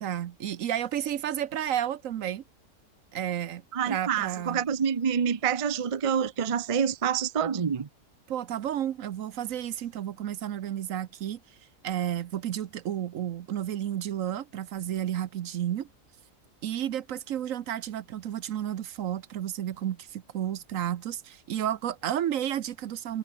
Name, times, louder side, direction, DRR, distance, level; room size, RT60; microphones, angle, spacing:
voice 1, 0.0-2.4 3.1-4.6 8.3-11.4 11.8-15.9 16.6-23.2, right 10 dB, 70° right, 1.1 m, -32 dB
voice 2, 3.7-7.9, right 7 dB, 35° right, 0.6 m, -27 dB
omnidirectional pair, 1.5 m